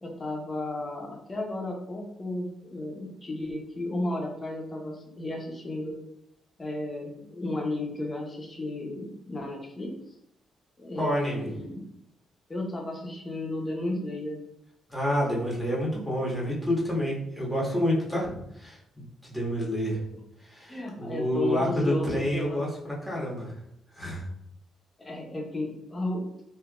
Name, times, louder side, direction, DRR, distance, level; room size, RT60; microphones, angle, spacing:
voice 1, 0.0-6.0 6.6-9.9 10.8-11.9 12.5-14.4 20.7-22.6 25.0-26.3, left 1 dB, 25° left, 0 dB, 0.9 m, -33 dB
voice 2, 11.0-11.5 14.9-20.0 20.4-22.7 23.0-23.5 23.9-24.2, equal, 5° left, -5 dB, 1.4 m, -28 dB
3.3 x 2.8 x 2.4 m, 0.79 s
cardioid pair, 90°, 0 cm